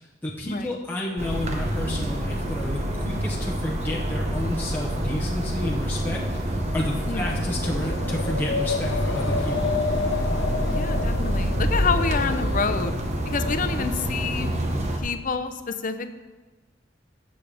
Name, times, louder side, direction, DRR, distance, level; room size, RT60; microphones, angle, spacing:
voice 1, 0.2-9.7, left 1 dB, 10° left, -3 dB, 0.8 m, -31 dB
sound 1, 1.2-15.0, equal, 40° right, 1.1 m, -27 dB
Wind, 4.3-14.3, left 3 dB, 75° left, 0.8 m, -32 dB
voice 2, 10.7-13.0 13.2-14.5 15.0-16.1, left 5 dB, 50° left, 9 dB, 0.6 m, -28 dB
16.0 x 6.5 x 3.4 m, 1.2 s
head